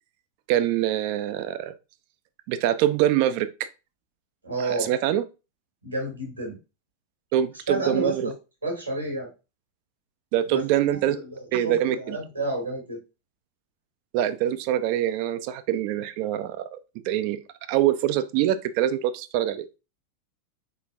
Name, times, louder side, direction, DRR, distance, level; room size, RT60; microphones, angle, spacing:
voice 1, 0.5-1.7 2.5-3.5 4.6-5.2 7.3-8.3 10.3-11.2 11.5-12.2 14.1-16.8 17.1-17.4 17.7-19.6, right 12 dB, 45° right, 0.4 m, -24 dB
voice 2, 4.4-4.9 5.8-6.6 7.7-8.3 8.6-9.3 10.5-10.6 11.2-13.0, right 2 dB, 85° right, 1.7 m, -30 dB
4.0 x 3.8 x 2.4 m
figure-of-eight pair, 90°, 0 cm